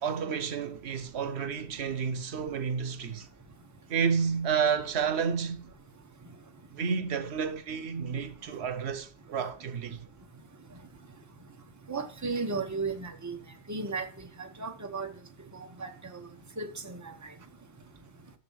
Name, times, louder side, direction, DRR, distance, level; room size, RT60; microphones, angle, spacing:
voice 1, 0.0-3.3 3.9-5.6 6.7-10.0, right 6 dB, 85° right, 1.1 m, -30 dB
voice 2, 11.9-13.4 13.7-14.1 14.4-15.1 15.5-16.2 16.6-17.0, right 4 dB, 15° right, 1.0 m, -34 dB
7.0 x 6.8 x 6.2 m
omnidirectional pair, 1.1 m